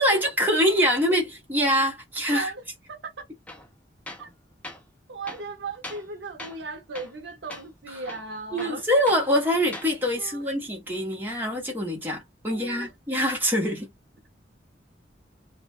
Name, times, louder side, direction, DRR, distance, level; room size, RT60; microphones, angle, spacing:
voice 1, 0.0-2.5 8.5-13.9, equal, 10° right, 0.9 m, -24 dB
Tools, 3.5-3.7 4.1-4.3 4.6-4.8 5.2-6.1 6.4-6.7 6.9-7.2 7.5-7.7 8.0-9.3 9.6-9.9, left 1 dB, 10° left, 0.5 m, -41 dB
voice 2, 5.1-8.8 10.2-10.4 12.5-12.9, right 3 dB, 80° right, 0.6 m, -37 dB
2.4 x 2.1 x 2.6 m
head